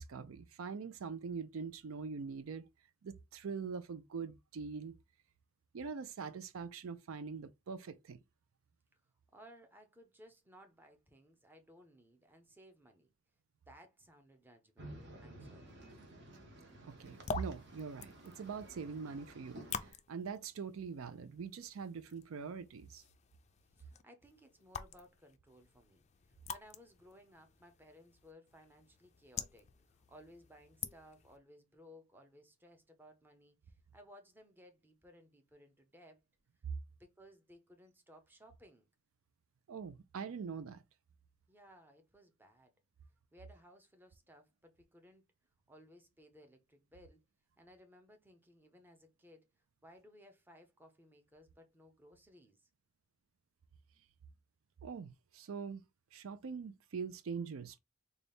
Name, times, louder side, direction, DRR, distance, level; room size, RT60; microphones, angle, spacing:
voice 1, 0.0-2.7 3.0-5.0 5.7-8.2 16.8-23.0 39.7-40.8 54.8-55.8 56.1-57.8, right 5 dB, 85° right, 0.4 m, -43 dB
voice 2, 9.3-13.1 13.7-15.7 23.7-36.2 36.9-38.9 41.5-42.7 43.3-45.2 45.7-47.2 47.6-49.5 49.8-52.7, equal, 10° right, 0.6 m, -60 dB
sound 1, 14.8-19.9, right 1 dB, 55° right, 1.0 m, -53 dB
sound 2, 17.0-31.4, left 6 dB, 35° left, 0.3 m, -48 dB
3.9 x 2.3 x 3.4 m
head